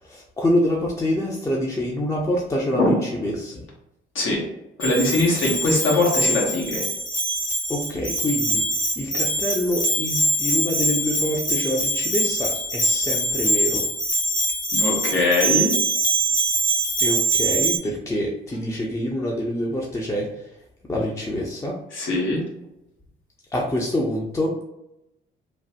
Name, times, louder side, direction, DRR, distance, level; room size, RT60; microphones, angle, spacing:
voice 1, 0.0-3.7 7.7-13.8 17.0-20.6 20.9-21.7 23.5-24.5, left 1 dB, 15° left, -2 dB, 0.5 m, -26 dB
voice 2, 4.8-6.8 14.7-15.8 21.9-22.4, left 2 dB, 75° left, -2 dB, 1.2 m, -21 dB
Bell, 4.8-17.8, right 1 dB, 40° left, 1.1 m, -23 dB
3.1 x 2.1 x 2.8 m, 0.88 s
cardioid pair, 90°, 20 cm